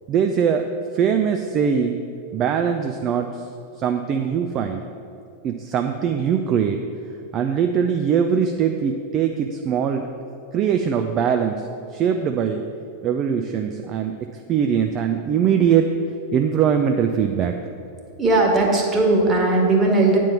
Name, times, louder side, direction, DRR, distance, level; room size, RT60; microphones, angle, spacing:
voice 1, 0.1-0.7 0.9-2.0 2.3-3.5 3.8-4.8 5.4-6.8 7.3-10.1 10.5-12.7 13.0-15.9 16.3-17.5, right 7 dB, 35° right, 5 dB, 0.4 m, -21 dB
voice 2, 18.2-20.2, right 2 dB, 15° right, -1 dB, 1.7 m, -18 dB
8.9 x 4.5 x 7.1 m, 2.5 s
figure-of-eight pair, 90°, 0 cm